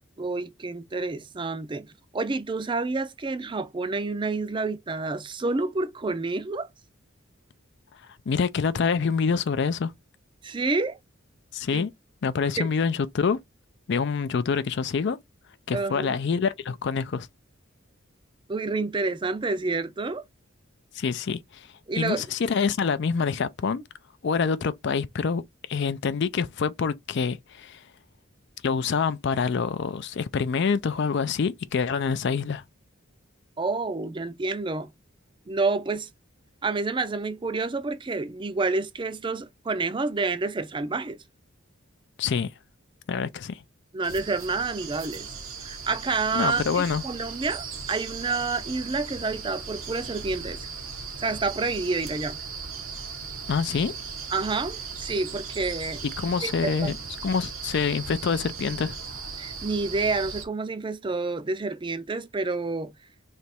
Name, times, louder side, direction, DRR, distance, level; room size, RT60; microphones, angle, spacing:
voice 1, 0.2-1.9 2.1-6.7 10.4-11.0 11.7-11.8 12.6-12.7 15.7-16.2 18.5-20.2 21.9-22.3 33.6-34.9 35.5-36.1 36.6-41.2 43.9-45.3 45.6-50.7 51.2-52.4 54.3-56.0 56.4-56.9 59.4-62.9, right 3 dB, 25° right, 0.4 m, -29 dB
voice 2, 8.3-9.9 11.5-11.9 12.2-13.4 13.9-15.2 15.7-17.3 20.9-21.7 22.0-23.8 24.2-25.4 25.7-27.8 28.6-32.6 42.2-42.5 43.1-43.6 46.3-47.0 53.5-53.9 56.2-57.0 57.2-59.0, left 5 dB, 55° left, 0.4 m, -26 dB
sound 1, 44.0-60.5, right 5 dB, 90° right, 1.2 m, -37 dB
3.3 x 2.9 x 4.2 m
head